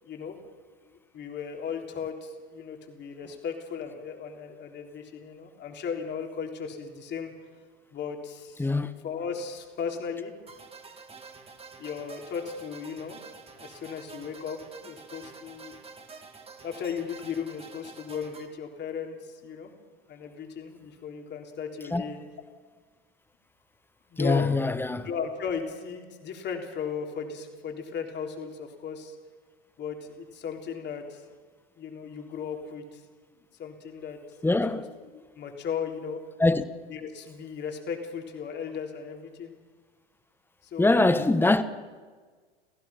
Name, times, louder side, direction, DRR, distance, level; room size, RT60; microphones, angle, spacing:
voice 1, 0.0-0.4 0.8-7.3 7.9-8.7 9.0-10.3 11.8-13.2 13.6-15.8 16.6-19.7 20.1-22.2 24.1-24.6 25.0-29.2 29.8-31.2 31.8-33.0 33.4-34.2 34.5-34.9 35.1-36.2 36.9-39.5 40.6-41.2, left 6 dB, 35° left, 3.7 m, -36 dB
sound 1, 10.5-18.5, right 4 dB, 20° right, 2.6 m, -48 dB
voice 2, 24.2-25.1 34.4-34.9 36.4-36.6 40.8-41.6, left 2 dB, 5° left, 1.2 m, -23 dB
29.5 x 15.5 x 5.9 m
hypercardioid pair, 95°, 30 cm